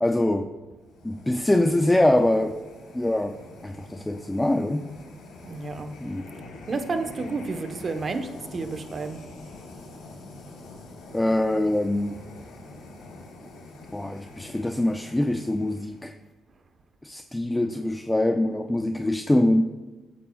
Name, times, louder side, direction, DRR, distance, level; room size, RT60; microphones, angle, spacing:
voice 1, 0.0-0.5 1.0-2.6 2.9-3.4 3.6-4.9 6.0-6.3 11.1-12.2 13.9-16.1 17.0-19.6, left 1 dB, 10° left, 7 dB, 0.5 m, -24 dB
sound 1, 0.8-16.2, left 2 dB, 90° left, 3.6 m, -45 dB
voice 2, 5.4-5.9 6.7-9.2, right 3 dB, 40° right, 7 dB, 1.0 m, -31 dB
22.0 x 8.9 x 2.3 m, 1.2 s
cardioid pair, 90°, 0 cm